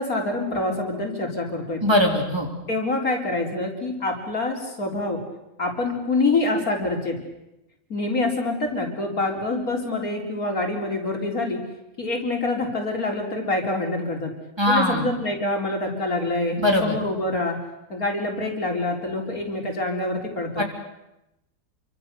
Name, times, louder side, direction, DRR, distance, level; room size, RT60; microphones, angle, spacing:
voice 1, 0.0-1.8 2.7-5.2 5.6-7.2 7.9-11.6 12.0-14.3 14.7-17.6 17.9-20.6, left 2 dB, 60° left, 1 dB, 4.4 m, -26 dB
voice 2, 1.8-2.5 14.6-15.1 16.6-17.0 20.6-20.7, left 1 dB, 15° right, 0 dB, 3.8 m, -20 dB
28.0 x 25.5 x 6.8 m, 0.93 s
omnidirectional pair, 1.8 m